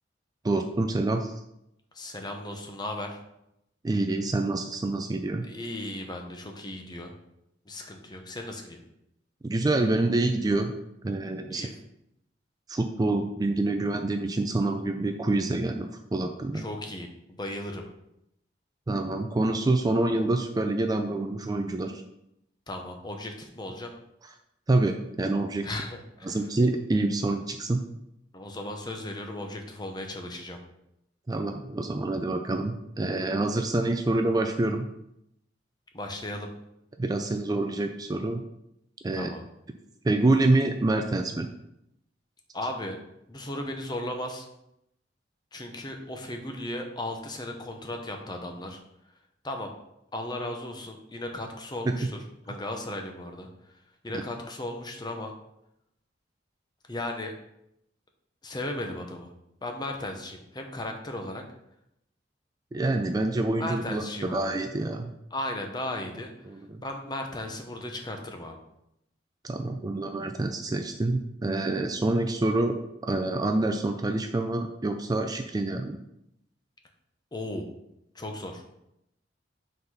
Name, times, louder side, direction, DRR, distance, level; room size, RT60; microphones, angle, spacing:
voice 1, 0.4-1.3 3.8-5.5 9.4-10.7 11.0-11.7 12.7-16.6 18.9-22.0 24.7-25.7 26.2-27.8 31.3-34.9 37.0-38.4 39.0-39.3 40.0-41.5 51.8-52.0 62.7-65.1 66.5-66.8 69.4-72.8 73.0-76.0, right 2 dB, 20° right, 5 dB, 0.4 m, -27 dB
voice 2, 1.9-3.2 5.5-7.1 7.7-8.8 11.5-11.7 16.5-17.8 22.7-23.9 25.6-26.4 28.3-30.6 35.9-36.5 39.1-39.4 42.5-43.0 43.3-44.5 45.5-48.8 49.4-49.7 50.1-52.2 52.5-53.5 54.0-55.3 56.9-57.3 58.4-59.3 59.6-61.4 63.6-64.5 65.3-66.3 66.8-68.6 77.3-77.7 78.1-78.6, left 1 dB, 25° left, 3 dB, 0.8 m, -36 dB
5.5 x 4.0 x 5.7 m, 0.81 s
head